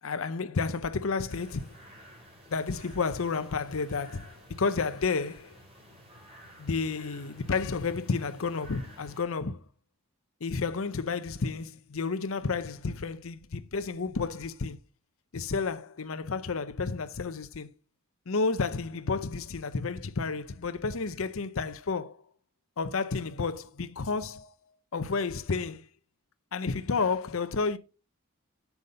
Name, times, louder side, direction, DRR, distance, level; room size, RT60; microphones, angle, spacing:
voice 1, 0.0-1.8 2.5-5.6 6.6-9.6 10.4-14.8 15.3-17.7 18.3-22.2 22.8-24.5 24.9-25.9 26.5-27.8, left 4 dB, 70° left, 0.7 m, -31 dB
sound 1, 1.3-9.2, equal, 30° right, 3.7 m, -53 dB
7.9 x 7.1 x 5.2 m
head